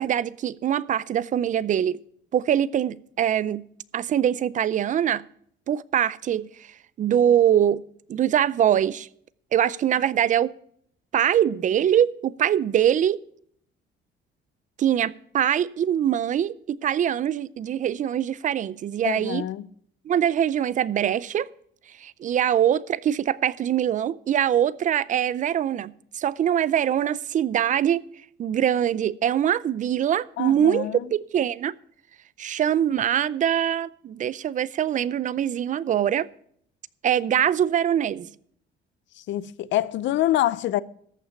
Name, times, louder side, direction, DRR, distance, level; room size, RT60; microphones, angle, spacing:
voice 1, 0.0-2.0 2.3-3.6 3.9-5.2 5.7-6.5 7.0-7.8 8.1-9.1 9.5-10.5 11.1-13.2 14.8-19.4 20.1-21.5 22.0-28.0 28.4-31.7 32.4-36.3 37.0-38.3, right 10 dB, 40° right, 0.4 m, -23 dB
voice 2, 19.0-19.6 30.4-31.0 39.3-40.8, left 13 dB, 70° left, 0.6 m, -25 dB
14.0 x 5.8 x 6.9 m
cardioid pair, 150°, 20 cm